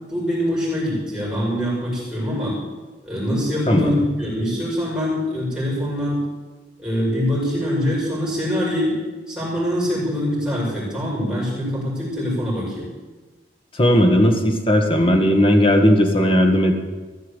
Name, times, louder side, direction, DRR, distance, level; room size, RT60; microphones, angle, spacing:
voice 1, 0.1-2.6 3.0-6.2 6.8-9.0 9.3-12.9, equal, 5° right, -7 dB, 6.2 m, -24 dB
voice 2, 3.7-4.0 13.8-16.7, equal, 30° left, 4 dB, 1.7 m, -16 dB
15.5 x 7.3 x 8.4 m, 1.3 s
head